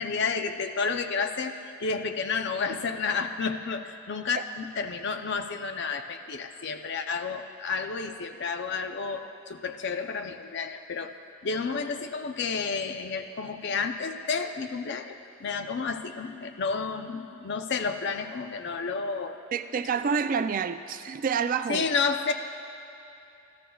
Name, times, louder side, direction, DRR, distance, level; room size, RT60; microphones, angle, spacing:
voice 1, 0.0-11.1 11.4-19.4 21.7-22.3, left 5 dB, 60° left, 6 dB, 0.5 m, -31 dB
voice 2, 19.5-21.8, right 6 dB, 45° right, 11 dB, 0.4 m, -28 dB
14.5 x 14.5 x 2.3 m, 2.9 s
head